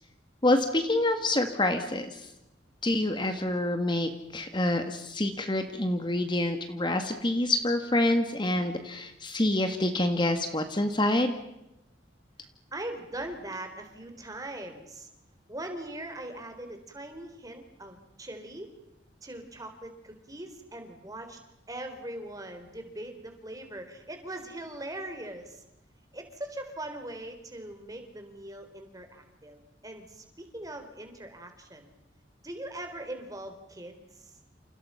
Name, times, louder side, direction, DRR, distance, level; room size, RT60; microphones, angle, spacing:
voice 1, 0.4-2.3 2.8-11.3, left 1 dB, 25° left, 7 dB, 1.8 m, -27 dB
voice 2, 12.7-15.1 15.5-18.7 19.2-21.4 21.7-25.6 26.1-31.9 32.4-34.4, right 1 dB, 20° right, 6 dB, 4.0 m, -41 dB
29.5 x 29.0 x 5.8 m, 0.87 s
head